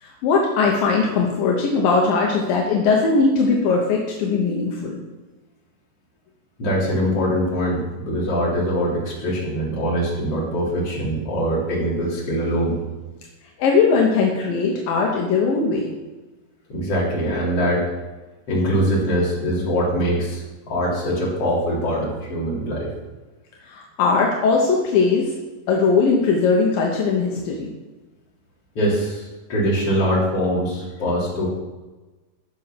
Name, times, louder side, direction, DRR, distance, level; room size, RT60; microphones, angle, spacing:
voice 1, 0.0-5.0 13.6-16.0 23.7-25.4 25.7-27.7, left 4 dB, 75° left, 0 dB, 2.8 m, -19 dB
voice 2, 6.6-12.8 16.7-17.9 18.5-22.9 28.8-31.5, equal, 45° left, -5 dB, 4.0 m, -23 dB
15.5 x 5.7 x 5.9 m, 1.2 s
omnidirectional pair, 4.1 m